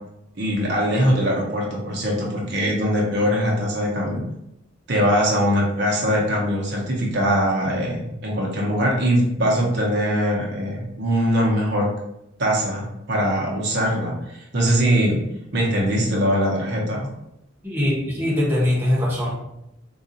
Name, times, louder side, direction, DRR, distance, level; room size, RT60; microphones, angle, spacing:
voice 1, 0.4-4.2 4.9-11.9 12.4-15.2 15.5-17.1, equal, 60° right, -2 dB, 0.7 m, -22 dB
voice 2, 17.6-19.3, left 1 dB, 10° right, -5 dB, 0.9 m, -22 dB
3.8 x 2.3 x 2.7 m, 0.84 s
head